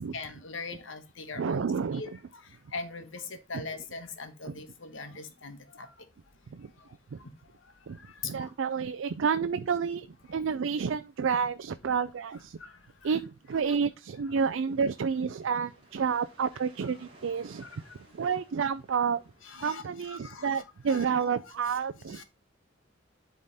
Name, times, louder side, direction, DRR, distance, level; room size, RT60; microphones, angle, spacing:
voice 1, 0.1-1.7 1.9-2.1 2.7-3.2 3.5-5.6 8.4-8.5 17.6-17.7 19.4-21.3 22.1-22.2, left 3 dB, 75° left, 1.3 m, -41 dB
voice 2, 1.4-2.0 3.5-3.6 4.4-4.5 6.5-6.7 7.1-7.2 7.9-8.0 8.2-12.6 13.0-13.2 13.5-17.8 18.1-19.2 19.6-22.2, right 6 dB, 75° right, 0.4 m, -30 dB
sound 1, 14.4-19.5, right 2 dB, 30° right, 2.7 m, -58 dB
11.0 x 3.7 x 4.1 m
head